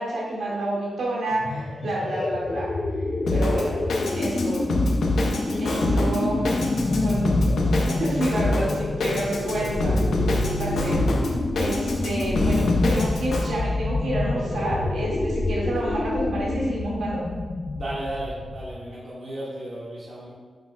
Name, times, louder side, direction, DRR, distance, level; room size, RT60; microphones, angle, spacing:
voice 1, 0.0-2.7 3.3-3.8 4.1-4.7 5.6-6.4 6.8-7.3 7.7-9.9 10.6-11.0 11.6-17.2, right 1 dB, 85° right, -6 dB, 2.0 m, -29 dB
sound 1, 1.3-18.9, left 2 dB, 45° left, 0.6 m, -28 dB
Drum kit, 3.3-13.5, left 2 dB, 85° left, 1.0 m, -25 dB
voice 2, 5.5-6.0 17.8-20.3, right 1 dB, 60° right, -7 dB, 1.7 m, -34 dB
sound 2, 5.9-7.9 9.6-11.6 13.3-15.3, equal, 20° right, 1.1 m, -34 dB
9.5 x 6.9 x 2.3 m, 1.5 s
cardioid pair, 90°, 0 cm